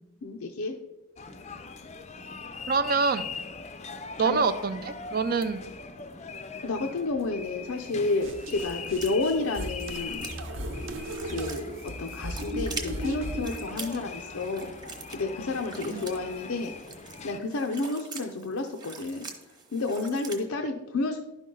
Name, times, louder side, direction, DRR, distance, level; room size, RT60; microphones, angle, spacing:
voice 1, 0.2-0.8 4.2-4.4 6.6-10.3 11.2-14.7 15.1-16.7 17.2-19.3 19.7-21.2, left 3 dB, 80° left, 4 dB, 0.6 m, -30 dB
sound 1, 1.2-17.4, left 5 dB, 30° left, 0.5 m, -41 dB
voice 2, 2.7-3.3 4.2-5.7 15.9-16.0, right 4 dB, 45° right, 11 dB, 0.4 m, -26 dB
sound 2, 7.8-20.4, right 4 dB, 20° right, 1.0 m, -45 dB
sound 3, 8.2-13.6, right 1 dB, 60° right, 0.9 m, -36 dB
11.5 x 5.3 x 3.8 m, 1.0 s
head